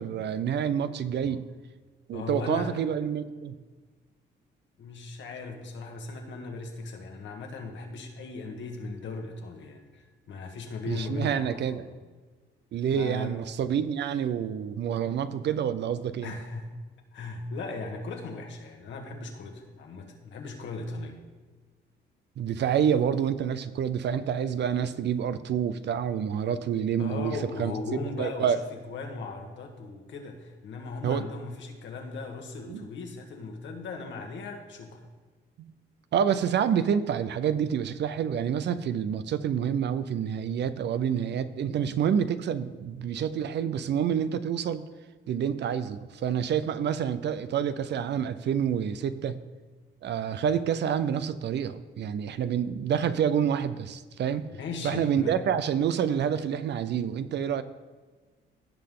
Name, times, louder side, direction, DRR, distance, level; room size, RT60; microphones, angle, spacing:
voice 1, 0.0-1.4 2.1-3.6 10.9-11.8 12.7-16.3 22.4-27.7 28.2-28.7 31.0-31.2 32.7-32.8 35.6-35.7 36.1-44.8 45.3-49.4 50.0-54.4 54.8-57.6, right 8 dB, 60° right, 13 dB, 0.6 m, -28 dB
voice 2, 2.1-2.8 4.8-11.9 12.9-13.4 16.2-16.7 17.1-21.2 27.0-35.1 54.6-55.4, left 3 dB, 70° left, 2 dB, 1.6 m, -38 dB
16.5 x 5.8 x 3.8 m, 1.4 s
cardioid pair, 90°, 20 cm